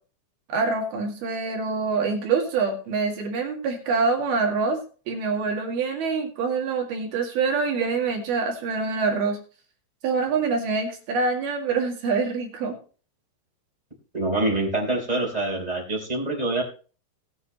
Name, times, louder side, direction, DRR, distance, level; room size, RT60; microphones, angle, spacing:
voice 1, 0.5-4.8 5.1-9.4 10.0-12.7, right 4 dB, 60° right, 2 dB, 3.5 m, -25 dB
voice 2, 14.1-16.6, right 2 dB, 10° right, -1 dB, 3.3 m, -25 dB
19.0 x 7.9 x 3.0 m, 0.37 s
omnidirectional pair, 5.7 m